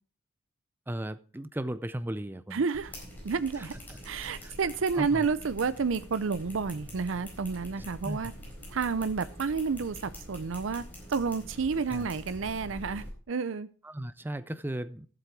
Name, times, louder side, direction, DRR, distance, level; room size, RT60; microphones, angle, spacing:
voice 1, 0.9-2.6 3.6-4.0 4.4-4.6 4.9-5.3 8.0-8.3 11.9-12.1 13.8-15.1, right 1 dB, 10° right, 0.5 m, -36 dB
voice 2, 2.5-2.9 3.2-3.7 4.0-8.3 8.7-10.8 11.1-13.7, right 5 dB, 75° right, 0.5 m, -30 dB
sound 1, 2.7-13.1, equal, 10° left, 4.3 m, -45 dB
12.0 x 7.9 x 4.7 m
head